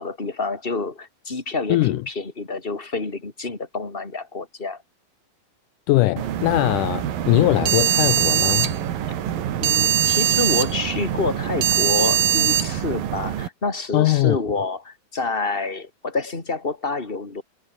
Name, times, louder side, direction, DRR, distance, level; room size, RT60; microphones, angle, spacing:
voice 1, 0.0-4.8 9.6-17.4, left 3 dB, 15° left, 3.4 m, -28 dB
voice 2, 1.7-2.0 5.9-8.8 13.9-14.4, left 16 dB, 75° left, 2.0 m, -20 dB
sound 1, 6.2-13.5, right 10 dB, 70° right, 3.6 m, -22 dB
omnidirectional pair, 4.2 m